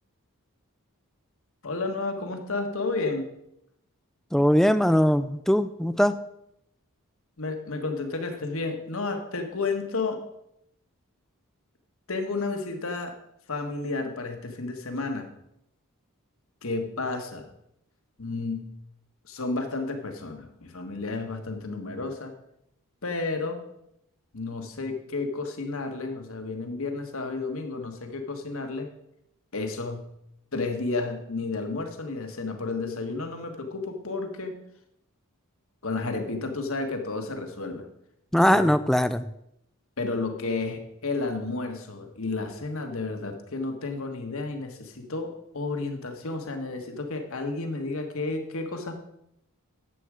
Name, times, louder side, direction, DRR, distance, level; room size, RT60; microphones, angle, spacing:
voice 1, 1.6-3.3 7.4-10.2 12.1-13.2 13.5-15.3 16.6-17.5 18.2-18.7 19.3-22.3 23.0-23.6 24.3-28.9 29.5-30.1 30.5-34.5 35.8-37.9 38.5-38.7 40.0-49.0, left 3 dB, 65° left, 5 dB, 1.5 m, -31 dB
voice 2, 4.3-6.2 38.3-39.3, equal, ahead, 12 dB, 0.3 m, -21 dB
11.0 x 7.9 x 4.9 m, 0.79 s
head